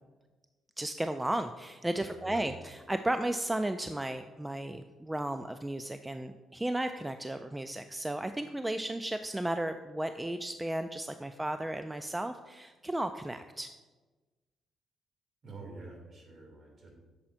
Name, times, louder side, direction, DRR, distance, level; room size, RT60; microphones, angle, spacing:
voice 1, 0.8-13.7, right 1 dB, 10° right, 8 dB, 0.3 m, -34 dB
voice 2, 2.1-2.6 15.4-16.9, right 3 dB, 50° right, 0 dB, 2.5 m, -47 dB
8.6 x 7.0 x 2.6 m, 1.3 s
cardioid pair, 90°, 0 cm